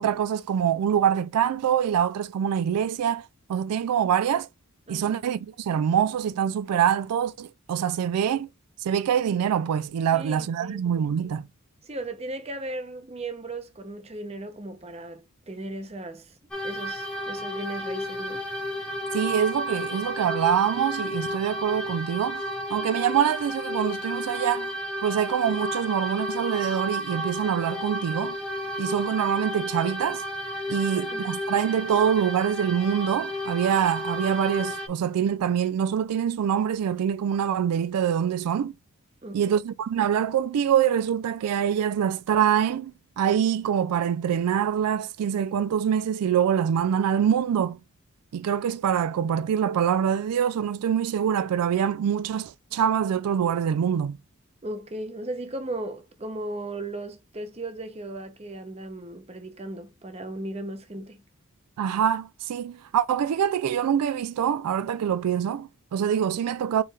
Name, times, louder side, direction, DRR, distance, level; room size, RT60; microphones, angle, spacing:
voice 1, 0.0-4.5 4.9-8.5 8.8-11.5 19.1-22.4 22.7-24.7 25.0-28.4 28.8-30.2 30.7-38.7 39.3-47.8 48.3-54.2 61.8-66.8, right 8 dB, 90° right, 0.3 m, -25 dB
voice 2, 4.9-5.2 10.1-10.8 11.8-16.4 16.6-18.4 30.9-31.3 39.2-39.6 54.6-61.2, right 2 dB, 25° right, 0.7 m, -36 dB
sound 1, 16.5-34.9, equal, 5° left, 1.0 m, -32 dB
4.6 x 3.2 x 3.3 m
head